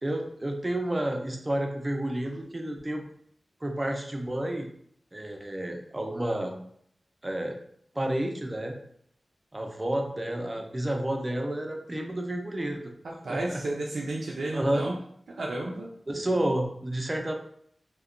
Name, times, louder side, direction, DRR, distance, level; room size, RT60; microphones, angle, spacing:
voice 1, 0.0-3.0 3.6-4.7 5.1-6.5 7.2-7.6 7.9-8.7 9.5-12.9 13.3-13.6 14.5-14.9 16.1-17.3, right 1 dB, 25° right, 3 dB, 0.4 m, -30 dB
voice 2, 13.0-14.9 15.3-15.9 16.1-16.4, right 2 dB, 90° right, -2 dB, 0.3 m, -33 dB
2.8 x 2.1 x 2.4 m, 0.67 s
wide cardioid pair, 95°, 0 cm